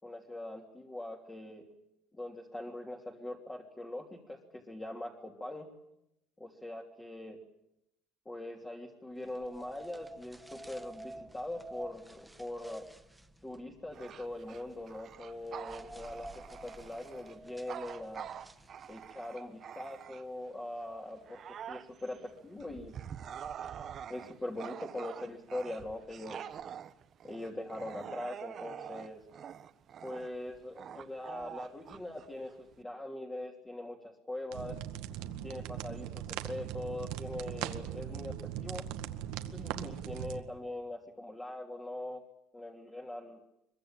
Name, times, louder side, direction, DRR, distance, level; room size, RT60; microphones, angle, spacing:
voice 1, 0.0-1.6 2.1-5.7 6.4-7.4 8.2-12.9 13.4-18.3 18.9-21.4 21.7-22.9 24.1-26.5 27.2-29.2 30.0-34.8 35.4-38.3 38.6-38.9 39.5-42.2 42.5-43.4, left 1 dB, 10° left, 1 dB, 3.0 m, -42 dB
sound 1, 9.2-19.2, right 1 dB, 5° right, 1.2 m, -50 dB
Bark / Growling, 13.9-20.5 20.9-32.8, right 8 dB, 35° right, 1.2 m, -46 dB
sound 2, 34.5-40.4, right 11 dB, 80° right, 1.9 m, -40 dB
24.0 x 23.5 x 9.0 m, 0.84 s
cardioid pair, 145°, 0 cm